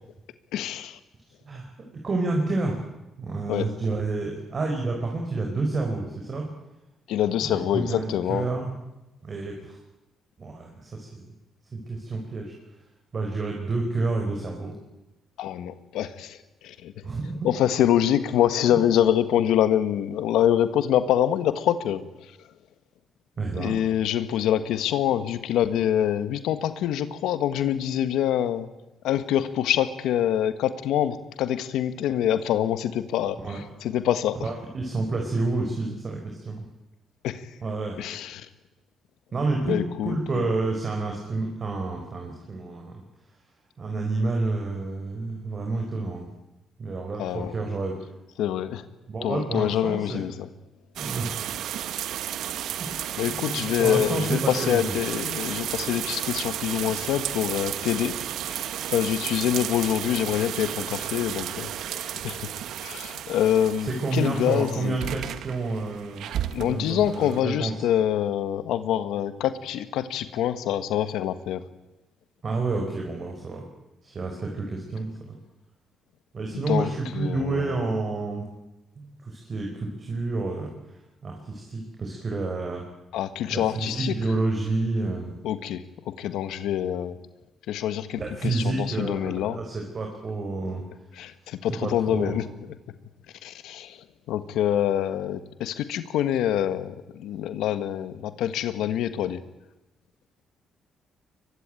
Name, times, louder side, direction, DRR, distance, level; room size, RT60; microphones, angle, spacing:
voice 1, 0.5-1.0 3.5-3.7 7.1-8.5 15.4-16.9 17.4-22.0 23.5-28.7 29.0-34.5 37.2-37.5 38.0-38.5 39.6-40.5 47.2-47.5 48.4-48.8 49.2-50.5 53.2-58.6 58.8-62.5 62.8-65.2 66.5-71.7 76.5-77.7 83.1-84.1 85.4-87.1 87.7-89.6 91.2-92.4 93.4-99.4, left 10 dB, 85° left, 11 dB, 1.5 m, -26 dB
voice 2, 1.5-2.8 3.2-6.4 7.4-8.7 9.2-9.8 10.4-11.3 11.7-12.5 13.1-14.7 17.0-17.4 18.7-18.8 23.4-23.8 33.4-33.6 34.3-36.6 37.6-38.0 39.3-42.9 43.8-46.3 46.8-47.9 49.1-50.2 51.0-51.4 53.3-54.9 63.9-66.3 66.6-67.7 72.4-73.6 74.0-75.4 76.3-78.4 79.0-80.7 81.2-82.8 83.5-85.3 88.2-90.8 91.7-92.3, right 3 dB, 40° right, 1 dB, 5.0 m, -29 dB
sound 1, 51.0-67.4, right 11 dB, 80° right, 1.1 m, -33 dB
23.0 x 21.5 x 9.2 m, 0.99 s
cardioid pair, 90°, 0 cm